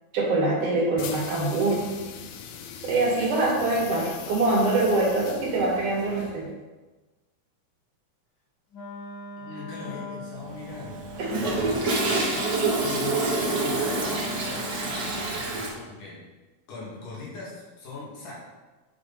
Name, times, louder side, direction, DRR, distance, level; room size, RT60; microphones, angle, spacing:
voice 1, 0.1-1.9 2.8-6.5 11.2-11.4, right 2 dB, 75° right, -4 dB, 3.7 m, -24 dB
sound 1, 1.0-6.6, left 8 dB, 75° left, 1.8 m, -41 dB
Wind instrument woodwind instrument, 8.7-15.4, left 3 dB, 45° left, 1.9 m, -40 dB
voice 2, 9.4-10.9 11.4-16.2 16.7-18.3, left 3 dB, 90° left, -6 dB, 4.3 m, -40 dB
Toilet flush, 10.4-15.7, right 3 dB, 45° right, 1.6 m, -27 dB
10.0 x 6.5 x 4.4 m, 1.2 s
omnidirectional pair, 3.6 m